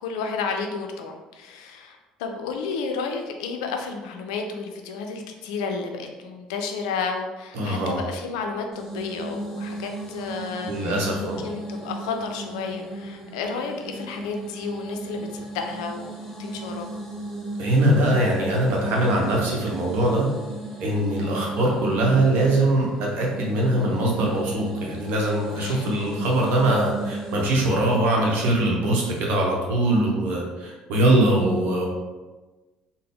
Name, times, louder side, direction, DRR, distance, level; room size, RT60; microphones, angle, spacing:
voice 1, 0.0-17.0 25.6-25.9, left 4 dB, 70° left, 4 dB, 0.4 m, -32 dB
voice 2, 7.5-8.0 10.7-11.4 17.6-20.3 20.8-31.9, right 1 dB, 60° right, -1 dB, 0.8 m, -22 dB
sound 1, 8.7-27.6, right 1 dB, 5° left, 1.4 m, -36 dB
3.8 x 2.0 x 3.5 m, 1.2 s
figure-of-eight pair, 55°, 4 cm